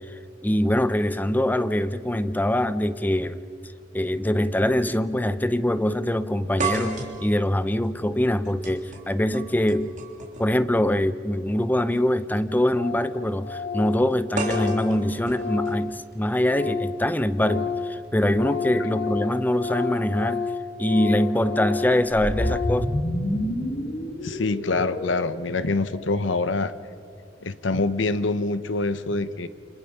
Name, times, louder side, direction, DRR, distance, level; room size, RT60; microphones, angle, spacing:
voice 1, 0.1-3.4 3.9-9.9 10.4-20.5 20.8-22.9, left 1 dB, 10° left, 13 dB, 0.6 m, -23 dB
sound 1, 4.7-4.8 5.1-5.2 6.6-10.6 11.8-12.0 14.4-16.4, right 3 dB, 45° right, 3.5 m, -34 dB
Organ, 12.1-12.2 12.4-12.5 12.7-13.1 13.4-17.0 17.3-22.9, left 5 dB, 55° left, 2.8 m, -31 dB
sound 2, 22.1-26.3, equal, 40° left, 2.1 m, -29 dB
voice 2, 24.2-26.7 27.4-29.5, left 3 dB, 70° left, 13 dB, 0.9 m, -25 dB
29.5 x 26.0 x 5.6 m, 2.3 s
head